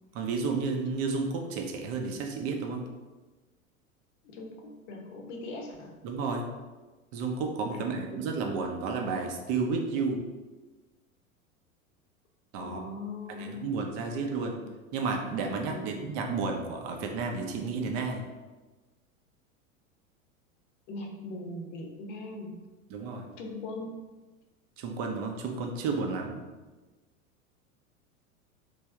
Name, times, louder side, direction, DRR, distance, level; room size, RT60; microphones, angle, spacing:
voice 1, 0.1-2.9 6.0-6.5 7.1-10.2 12.5-12.8 13.4-14.6 14.9-18.2 22.9-23.3 24.8-26.4, right 4 dB, 35° right, 3 dB, 0.6 m, -32 dB
voice 2, 4.2-6.0 7.7-8.3 12.6-13.8 15.7-16.1 20.9-22.7 23.4-24.0, left 2 dB, 55° left, 3 dB, 0.8 m, -40 dB
3.2 x 2.6 x 3.4 m, 1.2 s
figure-of-eight pair, 90°, 43 cm